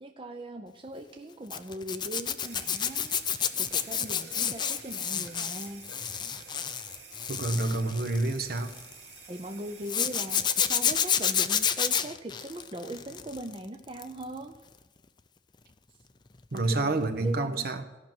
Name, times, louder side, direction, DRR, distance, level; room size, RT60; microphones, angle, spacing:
voice 1, 0.0-3.2 3.7-5.8 9.3-14.6 16.5-17.7, right 1 dB, 30° right, 5 dB, 0.6 m, -40 dB
Zipper (clothing), 1.5-8.9 9.9-13.5 13.9-14.2 16.6-16.7 17.0-17.1, left 8 dB, 25° left, 0.5 m, -29 dB
sound 1, 2.3-11.0, right 4 dB, 75° right, 2.4 m, -49 dB
voice 2, 7.3-8.7 16.5-17.8, right 2 dB, 55° right, 7 dB, 1.0 m, -28 dB
14.5 x 6.0 x 7.7 m, 1.2 s
head